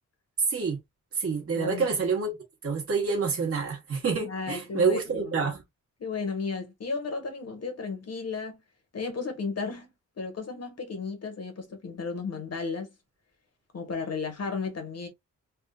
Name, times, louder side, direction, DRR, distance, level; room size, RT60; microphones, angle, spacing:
voice 1, 0.5-0.8 1.1-2.3 2.6-5.6, right 5 dB, 45° right, 1.2 m, -27 dB
voice 2, 1.5-1.9 4.2-5.5 6.0-8.6 8.9-9.9 10.2-12.9 13.7-15.1, left 4 dB, 55° left, 1.2 m, -34 dB
3.5 x 2.5 x 2.3 m
wide cardioid pair, 130°, 31 cm